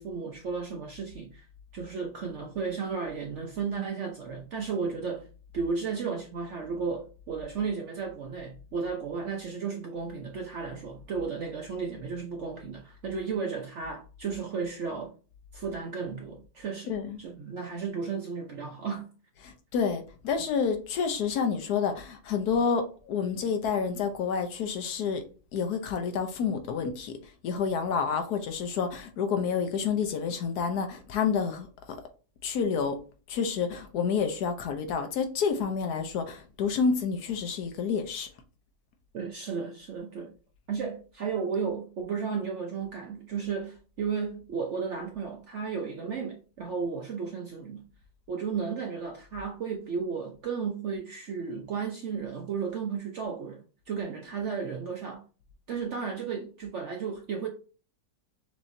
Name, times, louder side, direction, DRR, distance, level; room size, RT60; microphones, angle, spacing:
voice 1, 0.0-1.4 1.7-5.3 5.5-15.1 15.5-16.9 17.2-19.1 39.1-40.3 40.7-47.8 48.3-55.2 55.7-57.5, right 5 dB, 65° right, 0.7 m, -34 dB
voice 2, 16.9-17.2 19.4-25.2 25.5-27.1 27.4-31.7 32.4-33.0 33.3-38.3, left 6 dB, 70° left, 1.2 m, -29 dB
6.3 x 2.9 x 2.6 m
omnidirectional pair, 1.8 m